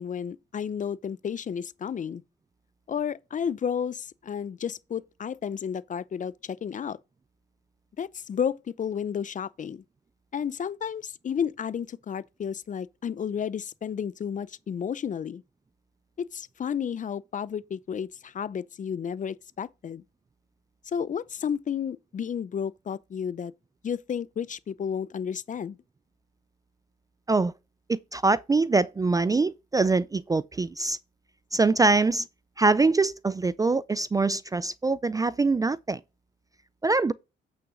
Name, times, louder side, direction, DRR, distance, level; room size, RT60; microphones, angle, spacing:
voice 1, 0.0-2.2 2.9-7.0 8.0-9.8 10.3-15.4 16.3-20.0 20.9-23.5 23.8-25.8, left 7 dB, 40° left, 0.6 m, -32 dB
voice 2, 27.9-31.0 31.5-32.3 32.6-36.0 36.8-37.1, right 3 dB, 20° right, 0.3 m, -24 dB
8.6 x 5.8 x 3.8 m
cardioid pair, 90°, 20 cm